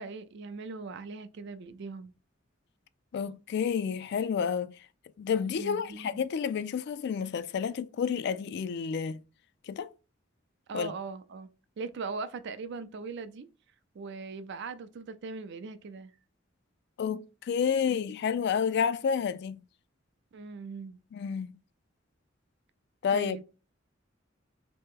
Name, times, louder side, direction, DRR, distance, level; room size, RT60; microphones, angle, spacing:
voice 1, 0.0-2.1 5.5-6.2 10.7-11.5 11.8-13.5 13.9-16.1 20.3-21.0 23.1-23.4, right 4 dB, 60° right, 0.4 m, -40 dB
voice 2, 3.1-4.7 5.2-9.2 9.7-9.9 10.7-10.9 17.0-19.6 21.1-21.6 23.0-23.4, left 7 dB, 60° left, 0.3 m, -30 dB
3.2 x 2.9 x 3.6 m
head